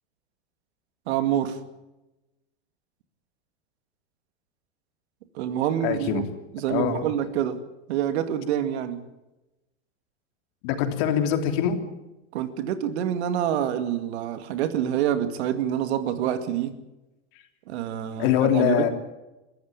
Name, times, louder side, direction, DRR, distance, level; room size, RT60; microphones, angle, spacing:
voice 1, 1.1-1.6 5.3-6.2 6.5-7.6 7.9-9.0 12.3-16.7 17.7-18.9, right 10 dB, 70° right, 10 dB, 2.3 m, -26 dB
voice 2, 5.8-6.2 6.7-7.0 10.6-11.8 18.2-18.9, left 10 dB, 60° left, 6 dB, 3.2 m, -23 dB
21.5 x 14.0 x 8.8 m, 1.0 s
hypercardioid pair, 110°, 34 cm